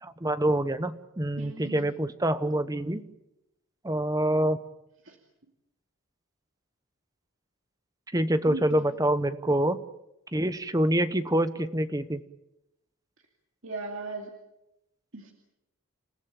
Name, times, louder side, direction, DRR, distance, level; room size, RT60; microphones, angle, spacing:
voice 1, 0.0-3.0 3.8-4.6 8.1-9.8 10.3-12.2, right 1 dB, 15° right, 12 dB, 0.9 m, -26 dB
voice 2, 1.4-1.9 5.0-5.2 8.5-8.9 13.6-14.3 15.1-15.3, right 3 dB, 60° right, 2 dB, 2.5 m, -38 dB
29.0 x 16.0 x 8.6 m, 0.89 s
head